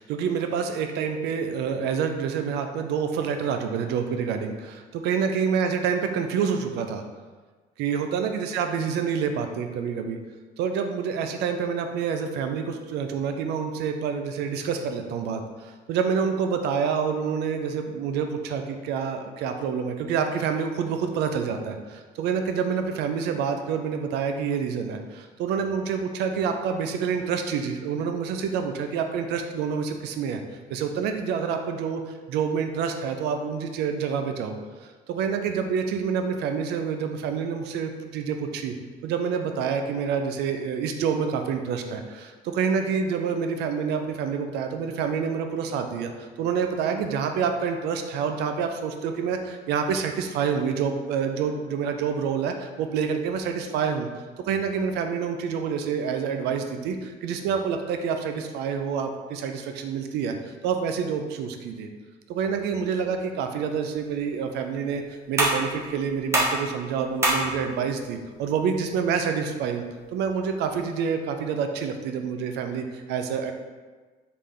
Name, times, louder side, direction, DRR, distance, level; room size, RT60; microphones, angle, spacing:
voice 1, 0.0-7.0 7.8-10.2 10.6-30.4 30.7-32.0 32.3-34.6 35.1-38.7 39.0-54.1 54.5-60.3 60.6-61.9 62.3-65.0 65.3-69.8 70.1-73.5, right 6 dB, 80° right, 6 dB, 0.4 m, -27 dB
sound 1, 63.8-70.8, right 1 dB, 15° right, 0.9 m, -31 dB
3.2 x 2.4 x 3.5 m, 1.4 s
cardioid pair, 110°, 17 cm